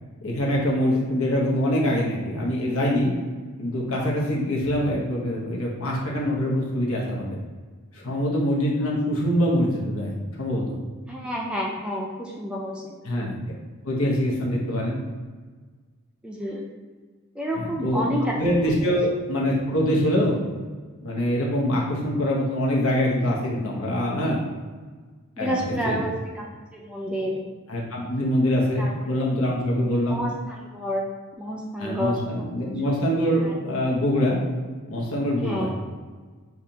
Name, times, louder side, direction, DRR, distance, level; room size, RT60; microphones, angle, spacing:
voice 1, 0.2-3.1 3.6-7.3 7.9-10.8 13.0-13.4 13.8-15.0 17.6-18.1 18.3-20.4 21.0-24.4 25.4-26.0 27.7-30.2 31.8-34.4 34.9-35.7, equal, 70° left, -3 dB, 1.1 m, -24 dB
voice 2, 11.1-12.9 16.2-16.6 17.4-18.4 24.2-24.4 25.4-27.4 28.8-29.1 30.1-31.0 31.4-32.5 32.8-32.9 33.4-33.5 35.4-35.7, equal, 5° right, -2 dB, 0.4 m, -30 dB
7.0 x 2.5 x 2.8 m, 1.4 s
head